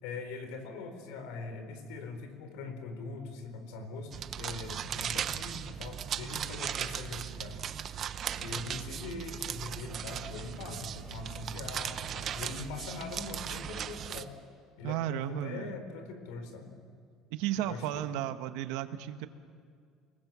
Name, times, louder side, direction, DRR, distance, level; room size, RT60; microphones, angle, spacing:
voice 1, 0.0-7.6 8.4-14.3 14.8-16.7 17.6-18.1, left 4 dB, 90° left, 8 dB, 4.2 m, -42 dB
sound 1, 4.1-14.2, right 9 dB, 35° right, 0.8 m, -37 dB
voice 2, 14.8-15.8 17.3-19.3, right 12 dB, 80° right, 9 dB, 1.4 m, -34 dB
29.5 x 20.0 x 7.6 m, 2.2 s
cardioid pair, 165°, 0 cm